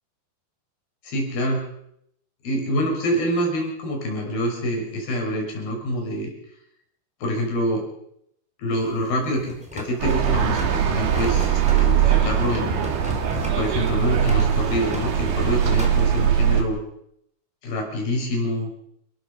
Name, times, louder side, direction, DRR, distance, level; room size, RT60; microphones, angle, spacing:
voice 1, 1.0-1.6 2.4-6.3 7.2-7.9 8.6-12.9 13.5-16.8 17.6-18.7, equal, 60° left, 1 dB, 7.2 m, -26 dB
sound 1, 8.8-16.1, equal, ahead, 3.8 m, -38 dB
sound 2, 10.0-16.6, right 9 dB, 85° right, 4.6 m, -21 dB
29.0 x 13.5 x 6.5 m, 0.73 s
omnidirectional pair, 5.0 m